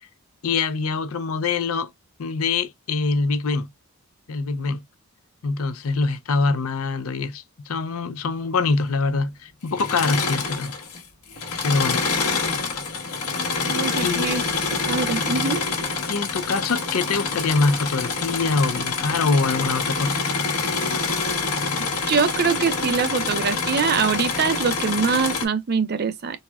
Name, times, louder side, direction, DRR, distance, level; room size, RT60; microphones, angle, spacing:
voice 1, 0.4-1.9 2.2-3.7 4.3-4.8 5.4-10.8 11.6-12.2 14.0-14.3 16.1-20.2 20.6-20.7, left 4 dB, 70° left, 0.5 m, -24 dB
Engine / Mechanisms, 9.7-11.0 11.3-25.5, left 4 dB, 85° left, 1.2 m, -26 dB
voice 2, 13.6-14.5 14.9-15.7 22.1-26.4, right 5 dB, 45° right, 0.4 m, -23 dB
4.1 x 2.2 x 2.3 m
head